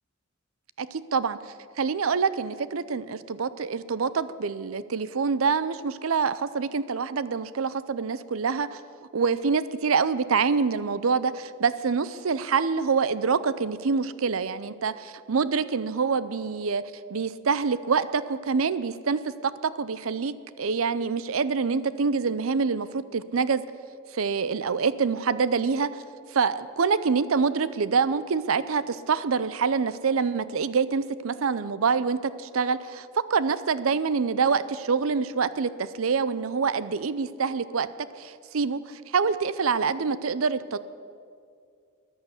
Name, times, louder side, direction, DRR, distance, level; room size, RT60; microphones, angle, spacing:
voice 1, 0.8-8.8 9.1-16.8 17.1-23.6 24.1-25.9 26.3-37.9 38.2-40.8, right 5 dB, 90° right, 16 dB, 0.6 m, -26 dB
14.5 x 10.5 x 8.2 m, 2.3 s
head